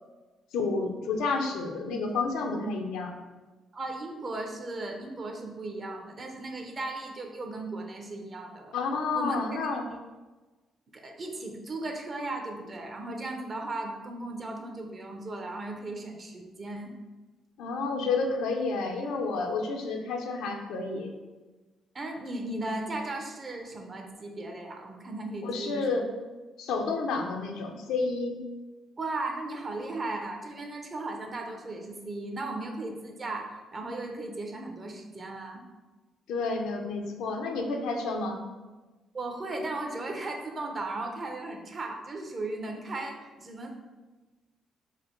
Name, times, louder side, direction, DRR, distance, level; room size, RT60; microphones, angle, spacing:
voice 1, 0.5-3.2 8.7-9.8 17.6-21.1 25.4-26.1 26.6-28.4 36.3-38.4, left 3 dB, 90° left, 2 dB, 0.6 m, -30 dB
voice 2, 3.7-8.7 9.1-9.7 10.9-16.9 21.9-25.9 29.0-35.6 39.1-43.7, right 2 dB, 40° right, 3 dB, 0.7 m, -36 dB
4.8 x 2.1 x 4.4 m, 1.2 s
cardioid pair, 90°, 0 cm